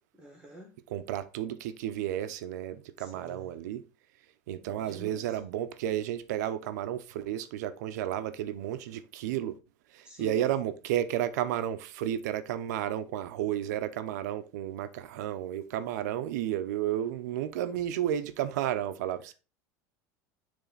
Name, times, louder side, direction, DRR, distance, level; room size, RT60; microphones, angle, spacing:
voice 1, 0.1-0.7 3.0-3.5 4.6-5.4 10.0-10.6, right 1 dB, 10° right, 1.4 m, -48 dB
voice 2, 0.9-3.8 4.5-9.6 9.9-19.3, right 11 dB, 90° right, 0.7 m, -32 dB
7.0 x 3.4 x 3.9 m
supercardioid pair, 145°, 9 cm